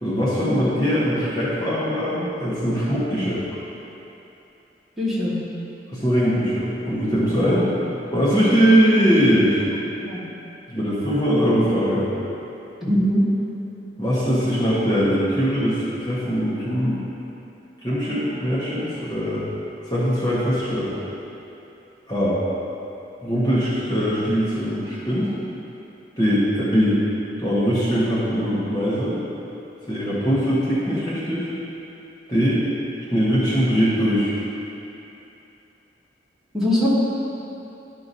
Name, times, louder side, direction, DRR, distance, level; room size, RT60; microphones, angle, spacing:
voice 1, 0.0-3.3 5.9-7.6 8.1-9.7 10.7-12.1 14.0-16.9 17.8-19.4 19.9-20.9 22.1-22.4 23.2-25.3 26.2-27.0 27.4-29.2 29.9-31.5 32.3-32.6 33.1-34.3, equal, 20° left, -10 dB, 1.2 m, -21 dB
voice 2, 5.0-5.3 7.4-7.6 10.0-10.2 12.8-13.2 36.5-36.9, equal, 5° right, -10 dB, 1.5 m, -22 dB
11.5 x 5.8 x 2.7 m, 2.9 s
head